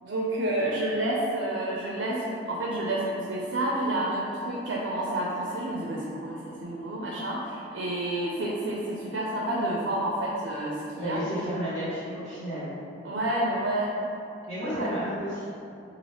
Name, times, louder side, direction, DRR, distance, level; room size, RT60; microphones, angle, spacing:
voice 1, 0.0-11.2 13.0-14.0 14.7-14.9, right 1 dB, 75° right, -4 dB, 0.4 m, -29 dB
voice 2, 11.0-12.7 14.5-15.4, equal, 40° left, -16 dB, 1.0 m, -32 dB
2.8 x 2.4 x 3.2 m, 2.5 s
head